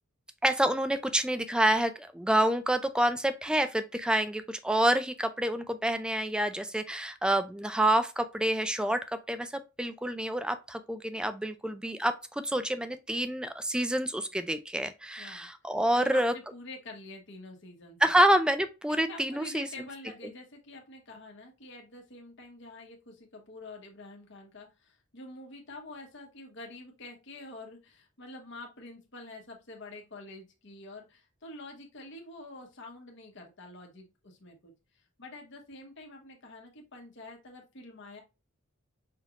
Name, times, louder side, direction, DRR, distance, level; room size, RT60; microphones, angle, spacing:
voice 1, 0.4-16.3 18.0-19.9, right 1 dB, 5° right, 0.4 m, -28 dB
voice 2, 15.2-15.5 15.9-18.0 18.9-34.7 35.2-38.2, left 2 dB, 60° left, 1.2 m, -47 dB
5.6 x 3.1 x 2.4 m
head